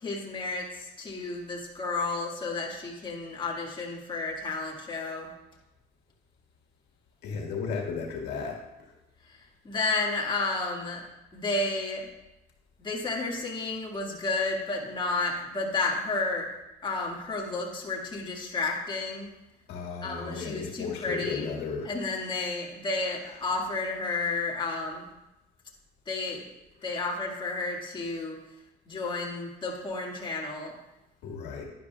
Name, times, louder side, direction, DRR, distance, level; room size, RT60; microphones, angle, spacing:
voice 1, 0.0-5.3 9.6-11.0 11.3-12.1 12.8-16.5 16.8-19.3 20.0-21.5 21.8-25.0 26.1-26.5 26.8-28.4 28.9-30.7, left 3 dB, 30° left, -2 dB, 1.9 m, -31 dB
voice 2, 7.2-8.6 19.7-21.9 31.2-31.6, left 5 dB, 80° left, 0 dB, 1.7 m, -34 dB
11.5 x 10.0 x 2.3 m, 0.94 s
cardioid pair, 110°, 17 cm